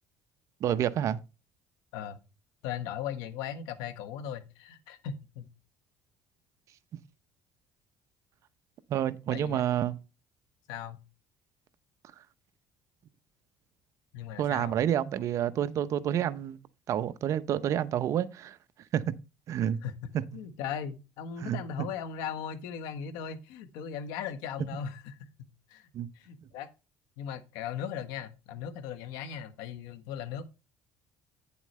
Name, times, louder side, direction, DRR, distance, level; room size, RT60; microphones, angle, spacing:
voice 1, 0.6-1.2 8.9-10.0 14.4-16.6 16.9-18.6 18.9-19.1 19.5-19.8 20.3-20.4 21.4-21.6 25.9-26.1, right 10 dB, 50° right, 0.7 m, -29 dB
voice 2, 2.6-5.5 9.3-9.6 10.7-11.0 14.1-14.8 19.8-25.9 26.1-26.7 27.2-30.5, left 8 dB, 85° left, 1.3 m, -38 dB
9.3 x 7.1 x 3.2 m
cardioid pair, 120°, 7 cm